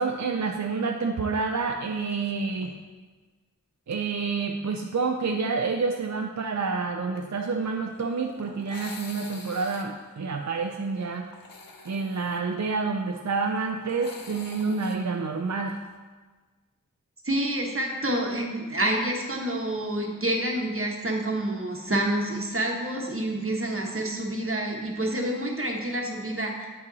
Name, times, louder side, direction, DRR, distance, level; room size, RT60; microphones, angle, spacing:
voice 1, 0.0-2.7 3.9-11.3 11.9-15.8, right 4 dB, 55° right, 2 dB, 0.5 m, -28 dB
sound 1, 2.0-2.3 2.6-2.7 3.9-4.1 7.2-16.0, left 3 dB, 85° left, 0.8 m, -47 dB
voice 2, 17.2-26.7, right 1 dB, 40° right, 0 dB, 1.2 m, -28 dB
8.2 x 5.5 x 4.0 m, 1.3 s
wide cardioid pair, 50°, 33 cm